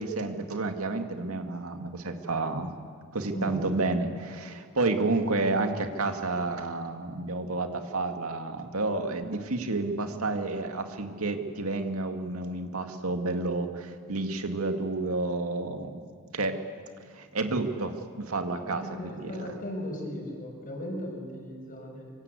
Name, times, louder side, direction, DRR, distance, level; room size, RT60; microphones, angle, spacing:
voice 1, 0.0-2.7 3.1-16.0 16.3-16.5 17.1-19.5, right 3 dB, 90° right, 5 dB, 2.2 m, -30 dB
voice 2, 18.5-22.1, equal, 40° left, 1 dB, 6.1 m, -37 dB
25.0 x 25.0 x 8.4 m, 2.1 s
head